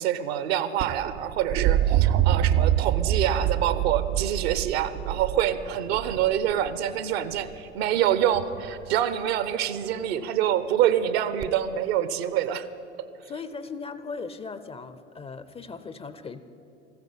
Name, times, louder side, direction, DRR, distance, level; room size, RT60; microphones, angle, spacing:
voice 1, 0.0-12.7, right 10 dB, 60° right, 13 dB, 0.9 m, -26 dB
sound 1, 0.8-6.7 8.3-8.8 11.4-11.5, right 11 dB, 40° right, 0.5 m, -25 dB
voice 2, 13.3-16.4, left 4 dB, 15° left, 12 dB, 0.5 m, -38 dB
14.5 x 9.4 x 8.5 m, 2.9 s
figure-of-eight pair, 75°, 36 cm